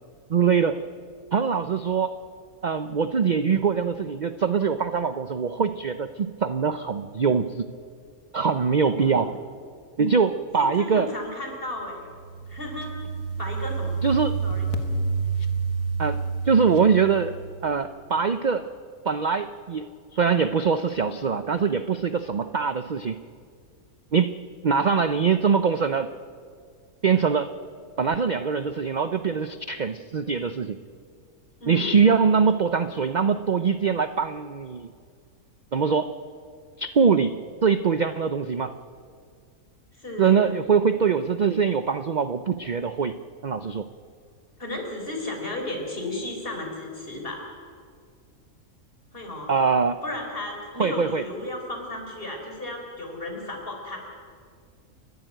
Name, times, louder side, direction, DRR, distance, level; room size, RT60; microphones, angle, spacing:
voice 1, 0.3-0.8 1.3-2.1 2.6-7.7 8.3-9.3 10.0-11.1 14.0-14.4 16.0-17.3 17.6-18.6 19.0-23.2 24.1-24.4 24.6-26.1 27.0-27.5 28.0-30.8 31.7-34.9 35.7-36.1 36.8-37.3 37.6-38.7 40.2-43.2 43.4-43.9 49.5-50.0 50.8-51.2, right 6 dB, 45° right, 11 dB, 0.6 m, -23 dB
voice 2, 8.9-9.3 10.6-12.1 12.5-12.9 13.4-14.0 14.4-14.7 31.6-32.0 40.0-40.4 44.6-47.5 49.1-49.5 50.0-54.0, left 2 dB, 40° left, 2 dB, 4.4 m, -34 dB
sound 1, 12.1-17.7, right 4 dB, 75° left, 1.8 m, -29 dB
29.5 x 12.0 x 9.2 m, 2.1 s
omnidirectional pair, 1.5 m